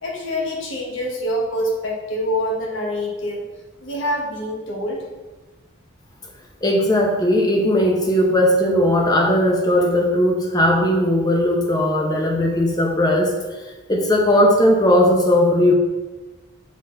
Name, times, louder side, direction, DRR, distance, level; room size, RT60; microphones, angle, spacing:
voice 1, 0.0-3.4 3.8-5.0, equal, 70° left, -1 dB, 1.3 m, -25 dB
voice 2, 6.6-13.3 13.9-15.7, left 1 dB, 20° left, 1 dB, 0.8 m, -17 dB
6.3 x 3.9 x 3.9 m, 1.2 s
head